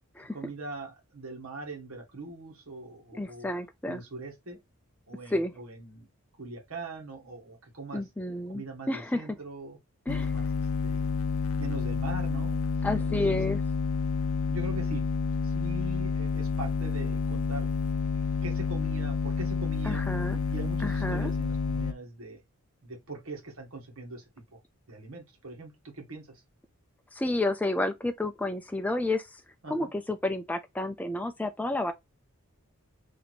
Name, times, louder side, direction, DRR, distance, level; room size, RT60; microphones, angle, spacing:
voice 1, 0.3-3.5 3.9-4.6 5.1-6.1 6.4-8.0 8.5-9.8 10.1-10.4 10.8-11.1 11.6-12.6 13.0-13.4 14.5-15.0 15.4-17.7 18.1-20.0 20.5-22.4 22.8-24.3 24.9-26.4 29.6-29.9, right 2 dB, 80° right, 1.3 m, -41 dB
voice 2, 3.2-4.0 5.3-5.5 7.9-9.2 10.1-10.3 12.8-13.6 19.8-20.4 20.8-21.3 27.1-29.4 29.7-31.9, left 2 dB, 5° left, 0.4 m, -30 dB
sound 1, 10.1-21.9, left 5 dB, 75° left, 0.4 m, -29 dB
3.0 x 2.8 x 4.1 m
head